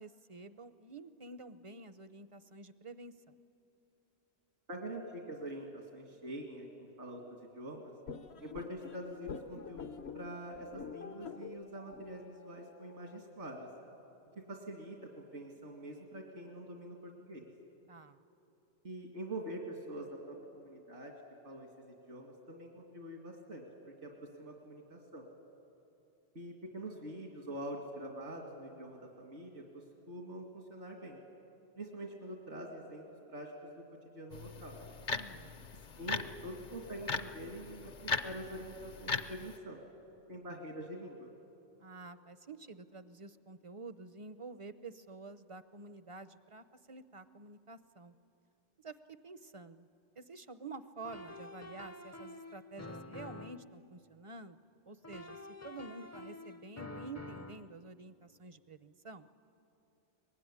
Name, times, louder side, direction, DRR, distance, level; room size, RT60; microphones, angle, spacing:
voice 1, 0.0-3.3 17.9-18.2 35.1-35.6 41.8-48.1 48.8-49.9 50.2-54.6 54.9-59.3, right 3 dB, 35° right, 12 dB, 0.6 m, -49 dB
voice 2, 4.7-7.9 8.4-13.7 14.4-17.5 18.8-21.1 21.4-23.6 24.0-25.3 26.3-31.2 31.8-33.8 34.1-34.8 36.0-39.8 40.3-41.3, right 1 dB, 80° right, 0 dB, 2.5 m, -45 dB
sound 1, 8.1-13.2, left 6 dB, 65° left, 1.1 m, -47 dB
sound 2, 34.3-39.6, left 4 dB, 50° left, 0.8 m, -39 dB
sound 3, 51.0-53.7 55.0-57.7, left 2 dB, 20° left, 0.6 m, -48 dB
24.0 x 21.0 x 9.9 m, 2.9 s
omnidirectional pair, 1.2 m